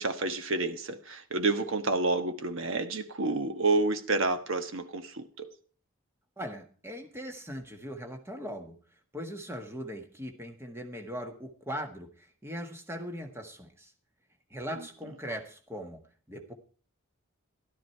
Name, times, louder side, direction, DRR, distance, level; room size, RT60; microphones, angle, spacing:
voice 1, 0.0-5.5 14.8-14.9, right 3 dB, 60° right, 1.3 m, -29 dB
voice 2, 6.4-8.7 9.1-13.9 14.5-16.5, equal, 10° right, 1.6 m, -40 dB
13.5 x 12.5 x 4.5 m
head